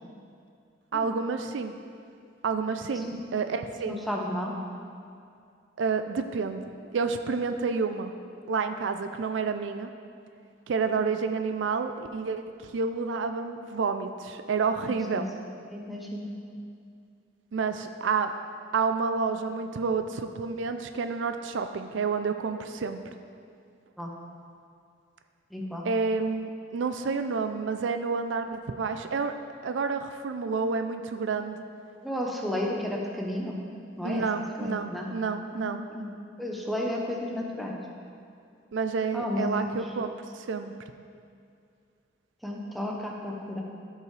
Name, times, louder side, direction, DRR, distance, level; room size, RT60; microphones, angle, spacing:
voice 1, 0.9-1.7 2.4-4.0 5.8-8.1 8.5-9.9 10.7-15.3 17.5-18.3 18.7-23.0 25.8-29.3 29.6-31.6 34.0-35.8 38.7-40.7, right 5 dB, 75° right, 8 dB, 0.4 m, -29 dB
voice 2, 3.9-4.5 14.8-15.2 15.7-16.3 24.0-24.1 25.5-25.9 32.0-33.6 34.0-34.3 34.6-35.1 35.5-36.1 36.4-37.8 39.1-39.9 42.4-43.6, left 1 dB, ahead, -2 dB, 0.8 m, -33 dB
13.0 x 5.5 x 3.2 m, 2.4 s
head